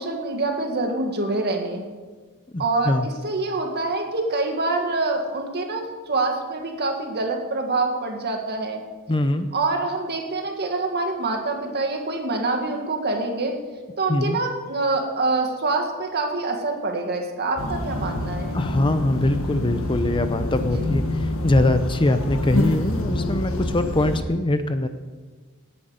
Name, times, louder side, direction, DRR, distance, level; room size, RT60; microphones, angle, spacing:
voice 1, 0.0-1.8 2.6-8.8 9.5-13.5 14.0-18.6 20.8-21.0, right 3 dB, 50° right, 3 dB, 2.0 m, -26 dB
voice 2, 2.5-3.1 9.1-9.5 14.1-14.4 18.5-24.9, left 1 dB, 20° left, 9 dB, 0.6 m, -22 dB
sound 1, 17.6-24.2, left 1 dB, 65° left, 1.5 m, -27 dB
17.5 x 9.7 x 5.1 m, 1.4 s
head